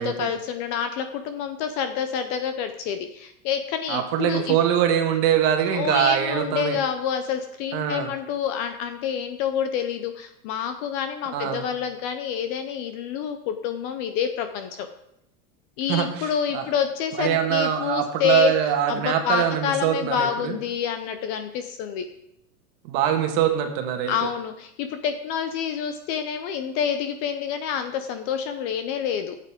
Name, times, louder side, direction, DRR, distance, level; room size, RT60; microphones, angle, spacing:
voice 1, 0.0-4.6 5.7-14.9 15.8-18.5 18.9-22.1 24.1-29.4, left 8 dB, 30° left, 8 dB, 0.5 m, -28 dB
voice 2, 3.9-6.8 7.7-8.1 11.3-11.7 15.9-16.7 17.2-20.6 22.8-24.1, right 9 dB, 45° right, 4 dB, 1.6 m, -23 dB
13.0 x 8.4 x 3.6 m, 0.80 s
supercardioid pair, 145°, 46 cm